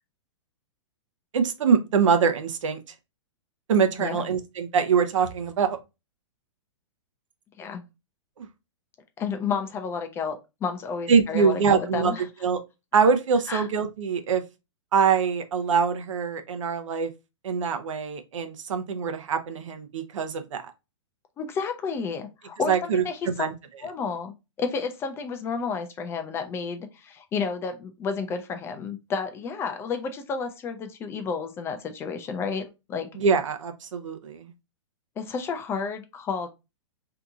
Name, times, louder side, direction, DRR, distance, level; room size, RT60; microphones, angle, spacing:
voice 1, 1.3-2.8 3.7-5.8 8.4-8.5 11.1-12.1 12.4-12.6 12.9-14.4 14.9-17.1 17.4-20.6 22.7-23.5 33.2-34.5, right 6 dB, 75° right, 0.7 m, -24 dB
voice 2, 9.2-12.2 13.5-13.7 21.4-23.3 23.8-33.1 35.2-36.5, left 5 dB, 15° left, 0.3 m, -31 dB
2.8 x 2.5 x 3.5 m
hypercardioid pair, 140°, 16 cm